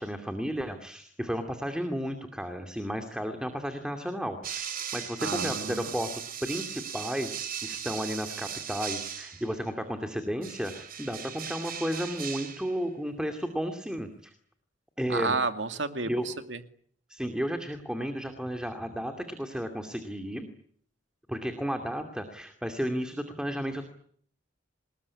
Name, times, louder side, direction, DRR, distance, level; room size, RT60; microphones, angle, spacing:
voice 1, 0.0-6.1 6.4-14.3 15.0-15.3 16.0-16.3 17.1-20.5 21.3-23.8, equal, 5° right, 6 dB, 2.6 m, -33 dB
sound 1, 4.4-9.6 10.4-12.8, right 8 dB, 50° right, 4.7 m, -38 dB
voice 2, 5.2-5.9 15.1-16.6, right 4 dB, 80° right, 8 dB, 2.3 m, -31 dB
28.0 x 20.5 x 9.8 m, 0.63 s
head